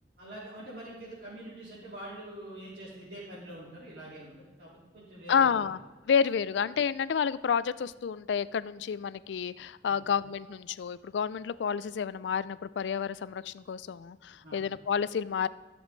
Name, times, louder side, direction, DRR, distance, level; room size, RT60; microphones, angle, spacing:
voice 1, 0.2-4.3 4.6-5.6 9.9-10.0 14.4-14.6, right 1 dB, 60° right, -11 dB, 3.9 m, -45 dB
voice 2, 5.3-5.8 6.1-15.5, left 7 dB, 75° left, 18 dB, 0.4 m, -29 dB
14.5 x 7.1 x 4.0 m, 1.3 s
head